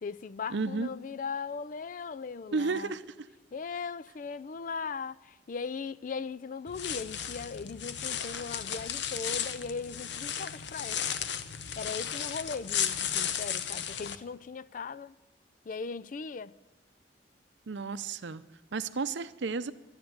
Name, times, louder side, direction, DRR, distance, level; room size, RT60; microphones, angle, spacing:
voice 1, 0.0-2.9 3.5-11.1 11.8-15.2 15.6-16.6, left 5 dB, 45° left, 0.4 m, -38 dB
voice 2, 0.5-0.9 2.5-3.0 17.7-18.4 18.7-19.7, right 4 dB, 75° right, 0.6 m, -32 dB
sound 1, 6.7-14.2, left 9 dB, 70° left, 0.7 m, -34 dB
11.5 x 10.5 x 9.3 m
head